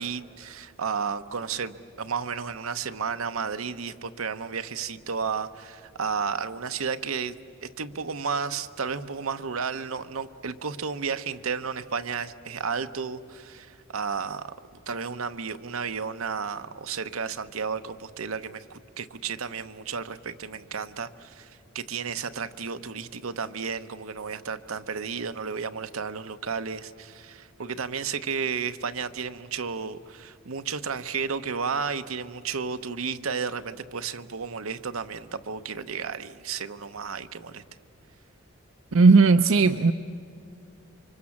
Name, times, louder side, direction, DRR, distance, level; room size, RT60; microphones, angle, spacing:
voice 1, 0.0-7.4 7.6-14.5 14.9-21.5 21.7-37.6, right 5 dB, 90° right, 9 dB, 0.9 m, -32 dB
voice 2, 38.9-39.9, right 4 dB, 70° right, 9 dB, 0.6 m, -16 dB
28.5 x 25.0 x 7.3 m, 2.5 s
head